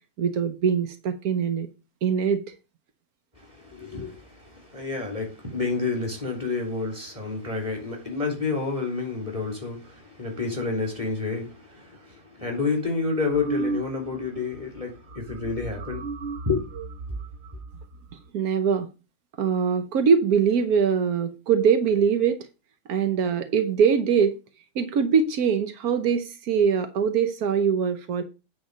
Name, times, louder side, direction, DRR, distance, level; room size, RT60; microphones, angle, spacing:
voice 1, 0.2-1.7 2.0-2.4 18.3-18.9 19.4-22.4 22.9-24.4 24.7-28.2, right 6 dB, 85° right, 1.4 m, -22 dB
voice 2, 3.4-16.0 16.5-16.7, left 4 dB, 25° right, 3.6 m, -29 dB
sound 1, 13.3-14.3 14.5-14.8 15.1-18.3, right 3 dB, 55° right, 0.9 m, -34 dB
9.3 x 4.3 x 6.5 m
omnidirectional pair, 1.5 m